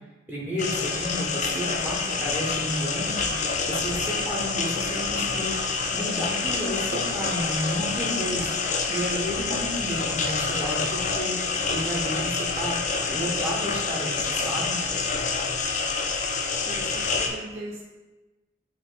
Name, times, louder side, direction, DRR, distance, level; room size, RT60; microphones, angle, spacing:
voice 1, 0.3-8.6 8.9-12.8 13.1-14.8, equal, 10° right, -5 dB, 0.7 m, -32 dB
sound 1, 0.6-17.3, left 4 dB, 35° left, 0.4 m, -27 dB
voice 2, 16.6-17.8, right 1 dB, 85° right, -3 dB, 1.1 m, -38 dB
5.0 x 2.7 x 3.8 m, 1.1 s
head